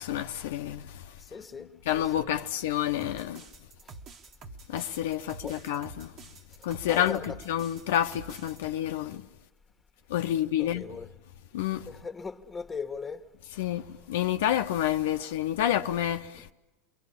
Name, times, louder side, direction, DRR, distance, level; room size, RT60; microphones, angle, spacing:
voice 1, 0.0-1.1 1.9-3.4 4.7-6.1 6.6-9.3 10.1-10.9 11.5-11.9 13.6-16.5, left 11 dB, 75° left, 0.9 m, -29 dB
voice 2, 1.2-1.7 2.0-2.3 5.4-5.6 6.9-7.4 10.6-11.1 11.8-13.2, left 5 dB, 15° left, 1.6 m, -38 dB
sound 1, 3.0-8.6, right 4 dB, 45° right, 1.7 m, -47 dB
28.5 x 22.5 x 8.6 m
hypercardioid pair, 95°, 0 cm